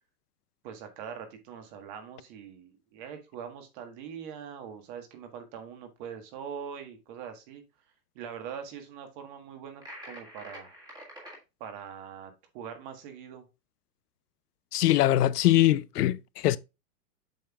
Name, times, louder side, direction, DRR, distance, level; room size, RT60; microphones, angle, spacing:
voice 1, 0.6-7.6 8.1-10.8 11.6-13.4, right 7 dB, 35° right, 1.4 m, -42 dB
sound 1, 9.8-11.4, equal, 10° right, 1.6 m, -45 dB
voice 2, 14.7-16.6, left 14 dB, 80° left, 0.6 m, -22 dB
7.7 x 5.2 x 2.3 m
supercardioid pair, 160°, 45 cm